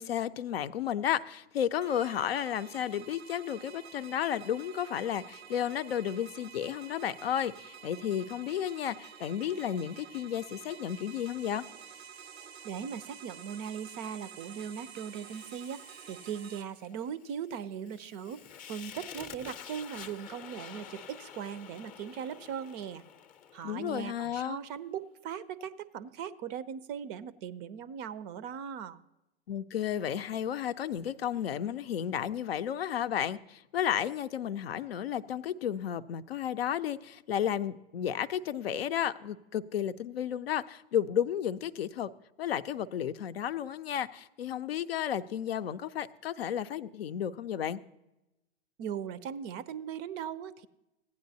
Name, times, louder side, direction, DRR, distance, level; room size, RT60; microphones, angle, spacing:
voice 1, 0.0-11.7 23.6-24.6 29.5-42.1 42.4-47.8, left 9 dB, 75° left, 0.5 m, -33 dB
sound 1, 1.8-16.6, right 7 dB, 85° right, 0.6 m, -50 dB
voice 2, 12.6-23.0 23.5-29.0 48.8-50.7, right 8 dB, 35° right, 0.4 m, -39 dB
Fire, 15.2-24.5, left 8 dB, 25° left, 0.6 m, -49 dB
16.0 x 9.5 x 2.7 m
figure-of-eight pair, 95°, 31 cm